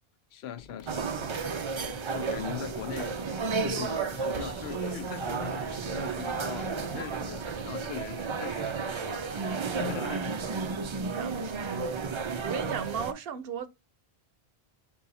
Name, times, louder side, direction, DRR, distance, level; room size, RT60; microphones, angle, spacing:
voice 1, 0.3-1.3 1.8-10.3, left 9 dB, 85° left, 0.8 m, -41 dB
sound 1, 0.6-7.6, left 5 dB, 60° left, 0.7 m, -49 dB
sound 2, 0.9-13.1, right 5 dB, 50° right, 0.3 m, -33 dB
sound 3, 4.3-9.4, right 4 dB, 30° right, 0.7 m, -45 dB
voice 2, 11.1-12.1 12.4-13.7, right 7 dB, 70° right, 0.8 m, -36 dB
3.9 x 2.7 x 4.0 m
omnidirectional pair, 1.0 m